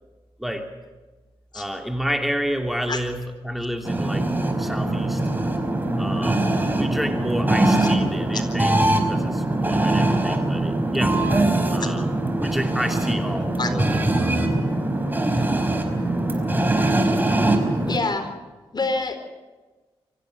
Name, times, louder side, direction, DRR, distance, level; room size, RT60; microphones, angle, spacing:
voice 1, 1.5-4.3 4.6-5.2 6.0-6.5 6.8-11.3 11.7-12.1 12.4-13.9 14.2-14.3 16.1-16.2, equal, ahead, 5 dB, 2.9 m, -29 dB
sound 1, 3.8-18.0, right 2 dB, 20° right, 4.8 m, -22 dB
voice 2, 17.9-18.3 18.7-19.2, left 3 dB, 45° left, 8 dB, 4.1 m, -26 dB
25.5 x 15.0 x 9.7 m, 1.3 s
cardioid pair, 55°, 10 cm